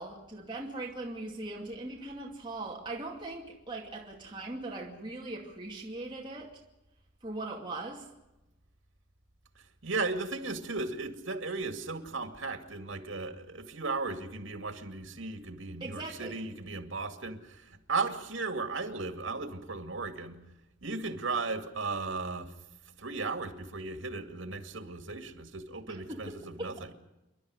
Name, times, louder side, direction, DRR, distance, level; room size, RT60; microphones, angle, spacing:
voice 1, 0.0-6.5 7.2-8.1 15.8-16.4 25.9-26.7, right 2 dB, 25° right, -2 dB, 2.5 m, -40 dB
voice 2, 9.8-20.4 20.8-22.5 23.0-26.9, right 3 dB, 85° right, 7 dB, 2.3 m, -36 dB
28.5 x 11.5 x 9.7 m, 0.97 s
head